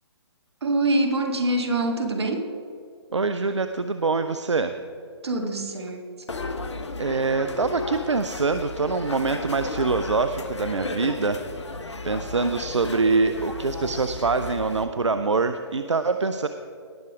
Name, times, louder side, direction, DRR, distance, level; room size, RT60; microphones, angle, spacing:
voice 1, 0.6-2.4 5.2-6.0, right 2 dB, 65° right, 5 dB, 1.8 m, -24 dB
voice 2, 3.1-4.7 7.0-11.4 12.0-16.5, right 4 dB, 85° right, 9 dB, 0.6 m, -24 dB
sound 1, 6.3-14.9, left 3 dB, 80° left, 1.1 m, -34 dB
18.5 x 6.9 x 4.9 m, 2.4 s
figure-of-eight pair, 135°, 15 cm